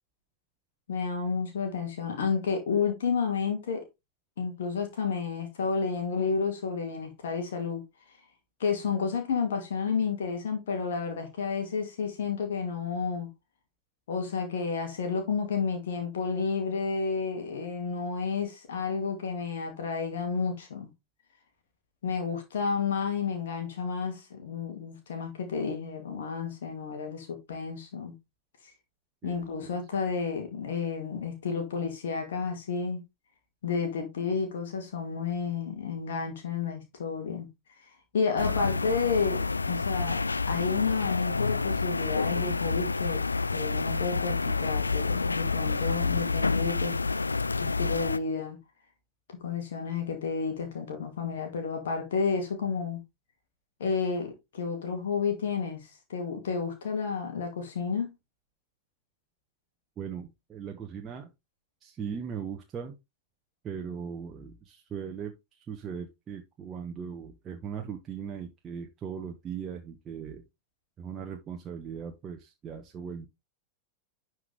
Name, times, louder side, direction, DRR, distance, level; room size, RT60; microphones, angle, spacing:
voice 1, 0.9-3.9 4.4-7.8 8.6-13.3 14.1-20.9 22.0-28.1 28.6-28.7 29.2-33.0 33.6-37.5 38.1-40.2 40.5-43.2 43.5-47.0 47.6-48.6 49.4-53.0 53.8-58.1, left 5 dB, 60° left, 2.2 m, -31 dB
voice 2, 29.2-29.8 60.0-61.3 61.8-63.0 63.6-70.4 71.0-73.3, right 7 dB, 25° right, 1.2 m, -39 dB
sound 1, 38.4-48.2, left 4 dB, 80° left, 0.3 m, -29 dB
11.0 x 4.7 x 3.4 m
figure-of-eight pair, 90°, 0 cm